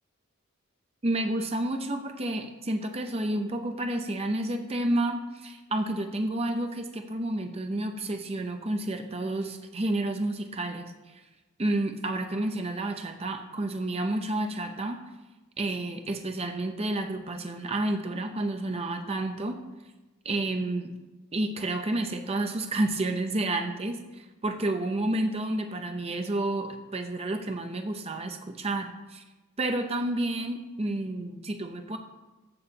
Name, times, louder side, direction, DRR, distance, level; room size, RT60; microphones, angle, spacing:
voice 1, 1.0-11.2 11.6-15.0 15.6-19.6 20.2-20.9 21.3-29.2 29.6-32.0, right 1 dB, 30° right, 5 dB, 0.7 m, -30 dB
6.9 x 6.9 x 7.0 m, 1.1 s
head